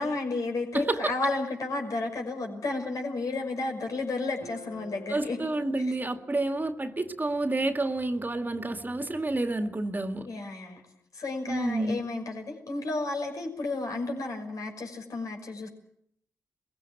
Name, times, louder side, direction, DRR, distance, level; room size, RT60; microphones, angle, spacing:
voice 1, 0.0-5.4 5.8-5.9 10.2-10.8 11.1-15.7, left 3 dB, 65° left, 3 dB, 6.0 m, -32 dB
voice 2, 0.7-1.1 5.1-10.3 11.5-12.0, right 2 dB, 30° right, 7 dB, 2.0 m, -29 dB
sound 1, 4.4-8.7, left 2 dB, 90° left, 4.3 m, -50 dB
21.0 x 16.0 x 9.0 m, 0.69 s
supercardioid pair, 45°, 6 cm